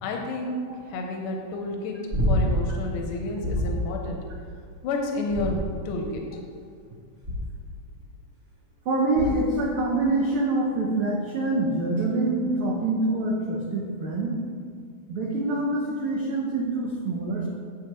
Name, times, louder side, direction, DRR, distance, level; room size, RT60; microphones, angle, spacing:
voice 1, 0.0-2.0 2.3-4.2 4.8-6.1, left 2 dB, 85° left, 1 dB, 2.4 m, -30 dB
sound 1, 2.1-2.8 3.4-3.9 5.3-6.0 7.2-7.7 9.1-9.6 12.0-12.1, equal, 40° right, 1.7 m, -26 dB
voice 2, 8.8-14.4 15.1-17.5, right 2 dB, 85° right, -2 dB, 1.2 m, -25 dB
11.0 x 8.0 x 3.0 m, 2.2 s
omnidirectional pair, 3.7 m